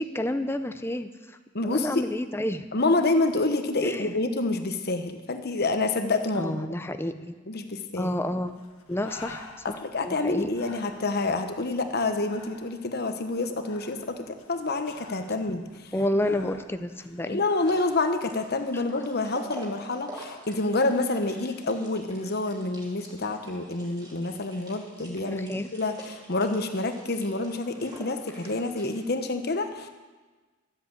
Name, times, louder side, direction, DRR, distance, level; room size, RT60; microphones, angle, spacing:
voice 1, 0.0-1.4 1.6-2.7 3.8-4.1 6.4-7.3 8.0-8.6 8.9-10.5 15.9-17.4 18.7-18.8 25.3-25.7, left 1 dB, 10° left, 9 dB, 0.5 m, -30 dB
voice 2, 1.5-2.0 2.7-6.5 7.5-8.1 9.6-15.9 17.3-29.9, left 2 dB, 50° left, 7 dB, 1.0 m, -28 dB
Breathing, 8.5-18.0, left 3 dB, 85° left, 1.7 m, -49 dB
sound 1, 17.6-29.0, equal, 20° right, 2.9 m, -47 dB
13.0 x 8.0 x 8.1 m, 1.3 s
head